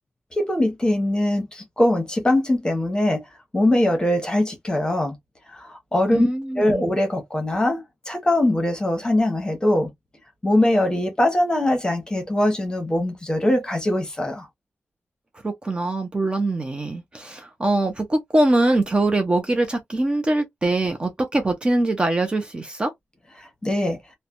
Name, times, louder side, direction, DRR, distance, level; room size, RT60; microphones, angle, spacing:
voice 1, 0.3-3.2 3.5-5.1 5.5-6.3 6.6-9.9 10.4-14.5 23.4-24.0, left 1 dB, 20° left, 0.9 m, -22 dB
voice 2, 6.1-6.8 15.4-22.9, right 2 dB, 25° right, 0.5 m, -23 dB
3.2 x 2.1 x 2.4 m
wide cardioid pair, 150°, 4 cm